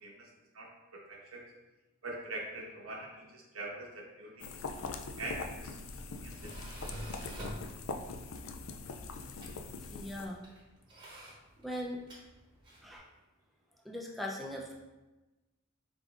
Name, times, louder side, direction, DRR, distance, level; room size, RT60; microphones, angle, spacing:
voice 1, 0.5-1.4 2.0-4.5 5.2-5.7 6.2-6.5 6.9-7.0, right 2 dB, 90° right, -1 dB, 1.1 m, -43 dB
sound 1, 4.4-10.3, left 4 dB, 75° left, 0.4 m, -42 dB
Tools, 5.2-13.0, equal, 20° right, 1.0 m, -49 dB
voice 2, 9.9-10.4 11.3-11.4 11.6-12.0 12.8-13.1 13.8-14.7, left 1 dB, ahead, -2 dB, 0.5 m, -39 dB
5.2 x 3.6 x 2.5 m, 1.1 s
head